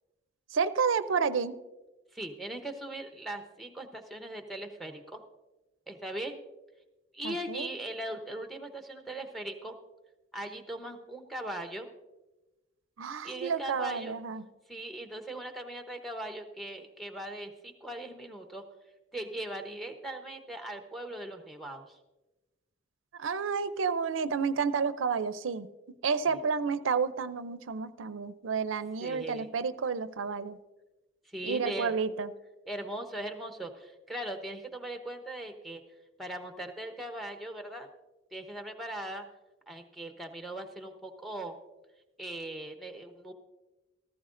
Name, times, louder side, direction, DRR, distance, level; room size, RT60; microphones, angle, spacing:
voice 1, 0.5-1.6 7.2-7.7 13.0-14.5 23.1-25.7 26.0-30.6 31.4-32.3, right 5 dB, 90° right, 14 dB, 0.5 m, -30 dB
voice 2, 2.1-5.2 5.9-6.4 7.1-9.8 10.3-11.9 13.2-14.2 14.7-18.6 19.1-22.0 26.3-26.4 29.0-29.5 31.2-31.9 32.7-35.8 36.2-37.9 38.3-39.3 39.7-41.5 42.2-43.3, right 1 dB, ahead, 6 dB, 0.8 m, -39 dB
16.0 x 14.0 x 2.5 m, 1.1 s
head